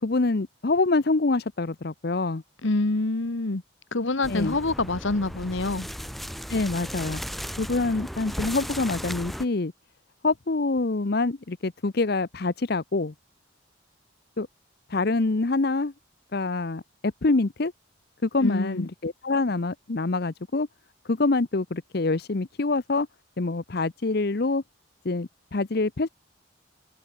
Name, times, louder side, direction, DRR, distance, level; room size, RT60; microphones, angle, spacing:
voice 1, 0.0-2.4 4.3-4.6 6.5-7.2 7.6-9.7 10.2-13.1 14.4-14.5 14.9-15.9 16.3-17.7 18.2-20.7 21.0-23.1 23.4-24.6 25.0-26.1, left 3 dB, 50° left, 0.7 m, -25 dB
voice 2, 2.6-3.6 3.9-5.9 18.4-18.9, left 2 dB, 70° left, 1.3 m, -26 dB
sound 1, 4.2-9.5, equal, ahead, 7.1 m, -36 dB
open air
head